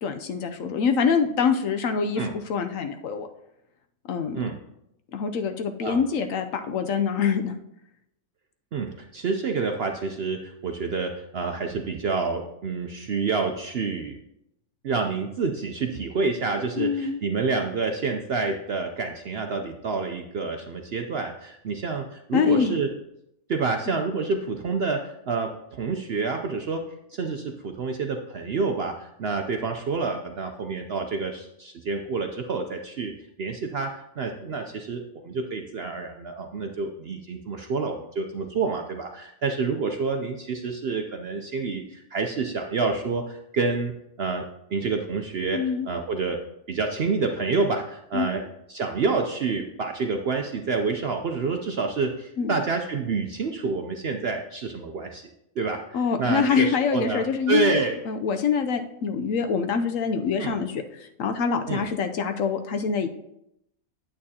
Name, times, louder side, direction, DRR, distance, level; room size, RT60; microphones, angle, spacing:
voice 1, 0.0-3.3 4.1-4.4 5.1-7.6 16.8-17.2 22.3-22.7 45.5-45.9 48.1-48.3 52.4-52.6 55.9-63.1, left 6 dB, 70° left, 7 dB, 0.9 m, -25 dB
voice 2, 8.7-14.2 14.8-22.9 23.5-26.8 27.1-43.9 44.2-44.5 44.7-46.4 46.7-55.2 55.6-58.0 60.4-60.6 61.7-61.8, right 4 dB, 60° right, 4 dB, 0.6 m, -28 dB
8.6 x 8.6 x 2.8 m, 0.80 s
omnidirectional pair, 1.6 m